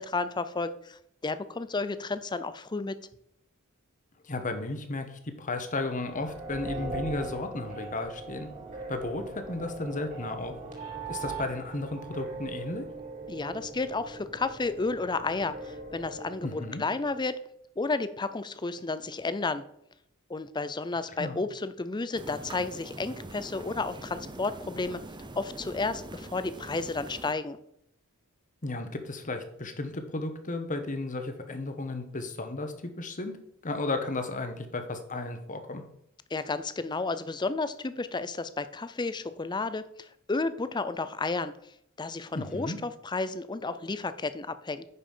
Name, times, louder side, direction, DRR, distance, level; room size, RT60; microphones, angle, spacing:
voice 1, 0.0-3.0 13.3-17.4 17.8-19.6 20.3-25.0 25.4-27.6 36.3-41.5 42.0-44.9, left 3 dB, 20° left, 13 dB, 0.5 m, -32 dB
voice 2, 4.2-8.5 8.9-10.5 11.1-12.8 16.4-16.8 21.2-21.4 28.6-33.3 33.6-35.8 42.3-42.8, left 2 dB, 35° left, 7 dB, 1.2 m, -34 dB
sound 1, 5.9-17.2, right 3 dB, 35° right, 2.6 m, -40 dB
sound 2, 22.1-27.3, right 2 dB, 20° right, 0.7 m, -43 dB
9.8 x 5.5 x 5.6 m, 0.73 s
head